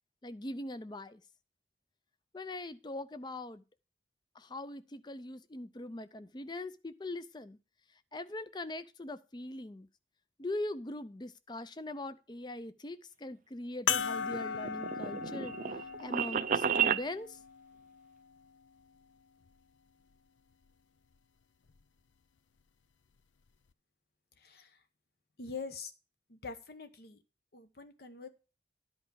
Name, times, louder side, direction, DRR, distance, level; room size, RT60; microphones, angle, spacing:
voice 1, 0.2-1.2 2.3-3.6 4.3-7.6 8.1-9.9 10.4-15.5 16.0-17.4, left 1 dB, 25° left, 0.5 m, -41 dB
sound 1, 13.9-18.7 19.5-19.6 21.7-21.8, left 7 dB, 85° left, 0.6 m, -38 dB
sound 2, 14.0-17.1, right 7 dB, 45° right, 0.4 m, -32 dB
voice 2, 24.4-24.8 25.4-25.9 26.3-27.2 27.5-28.3, left 4 dB, 55° left, 0.9 m, -44 dB
10.5 x 4.7 x 6.8 m
head